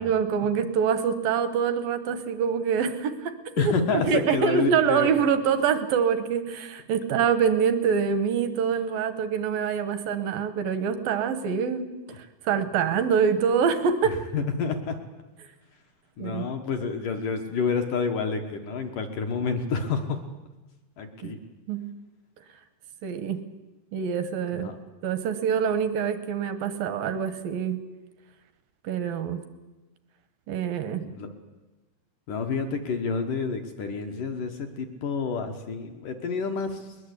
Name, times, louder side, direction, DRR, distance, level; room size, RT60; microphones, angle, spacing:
voice 1, 0.0-3.7 4.0-14.2 16.2-16.4 21.2-21.3 21.7-21.9 23.0-23.4 23.9-24.7 25.0-27.8 28.8-29.4 30.5-31.0, right 7 dB, 75° right, 11 dB, 2.1 m, -25 dB
voice 2, 3.6-5.1 14.3-15.0 16.2-20.2 21.0-21.4 24.5-24.8 31.0-31.3 32.3-36.9, left 5 dB, 65° left, 5 dB, 2.2 m, -29 dB
21.0 x 21.0 x 8.3 m, 1.1 s
omnidirectional pair, 5.5 m